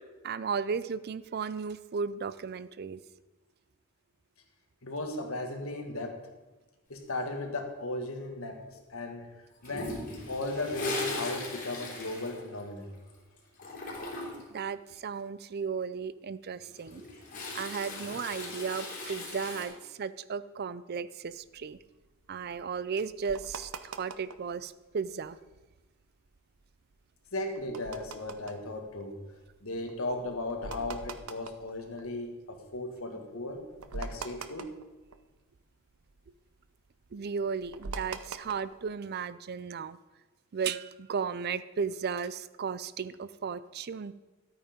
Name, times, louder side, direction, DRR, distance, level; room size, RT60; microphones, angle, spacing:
voice 1, 0.2-3.0 14.5-17.0 17.5-21.8 22.3-25.4 37.1-40.0 40.5-44.1, right 6 dB, 45° right, 15 dB, 0.4 m, -35 dB
voice 2, 4.8-6.2 6.9-9.3 9.6-10.0 10.3-12.9 27.3-29.2 29.6-33.6 33.9-34.7, left 2 dB, 70° left, 4 dB, 1.8 m, -36 dB
Toilet flush, 9.6-13.1 13.4-14.5 16.6-19.6, left 2 dB, 40° left, 3.6 m, -39 dB
sound 1, 21.3-24.6 25.0-25.6 26.0-32.7 33.1-33.2 33.5-35.6 35.9-38.9, right 4 dB, 80° right, 0.8 m, -44 dB
13.0 x 8.8 x 5.1 m, 1.1 s
head